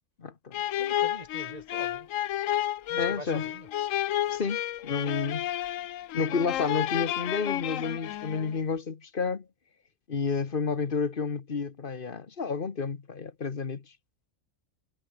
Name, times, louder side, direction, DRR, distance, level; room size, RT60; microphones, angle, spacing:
voice 1, 0.2-0.6 3.0-3.5 4.3-5.6 6.1-9.5 10.1-13.8, left 5 dB, 40° left, 1.4 m, -31 dB
sound 1, 0.5-8.6, left 12 dB, 75° left, 1.0 m, -31 dB
voice 2, 0.8-2.1 2.9-3.7, right 1 dB, 25° right, 4.6 m, -44 dB
omnidirectional pair, 1.4 m